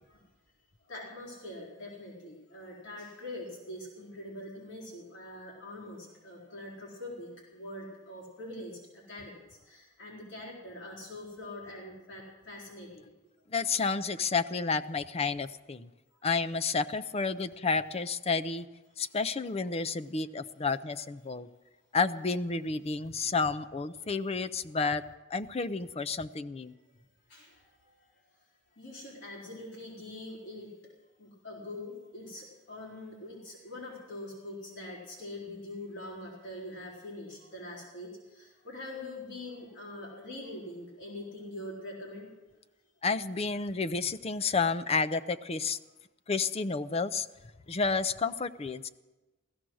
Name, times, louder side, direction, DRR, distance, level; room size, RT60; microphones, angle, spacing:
voice 1, 0.9-13.0 13.8-13.9 27.3-27.8 28.8-30.7 31.2-42.3, left 1 dB, 60° left, -4 dB, 4.1 m, -44 dB
voice 2, 13.5-15.9 16.2-18.7 19.0-21.5 21.9-25.0 25.3-26.7 43.0-45.8 46.3-47.3 47.7-48.9, left 4 dB, 30° left, 12 dB, 0.5 m, -30 dB
16.0 x 14.0 x 6.2 m, 1.1 s
head